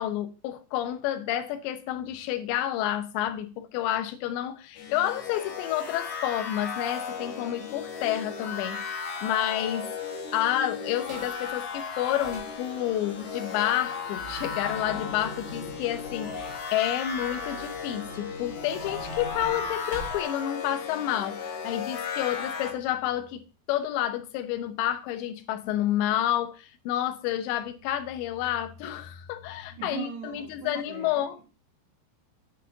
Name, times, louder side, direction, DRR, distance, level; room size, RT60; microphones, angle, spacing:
voice 1, 0.0-9.9 10.3-31.4, left 12 dB, 85° left, 2.9 m, -30 dB
sound 1, 4.8-22.7, left 6 dB, 60° left, 2.1 m, -35 dB
sound 2, 11.0-11.4 11.9-20.2, right 1 dB, 55° right, 3.8 m, -44 dB
voice 2, 29.7-31.2, right 8 dB, 75° right, 1.9 m, -40 dB
9.1 x 7.6 x 2.7 m
omnidirectional pair, 5.2 m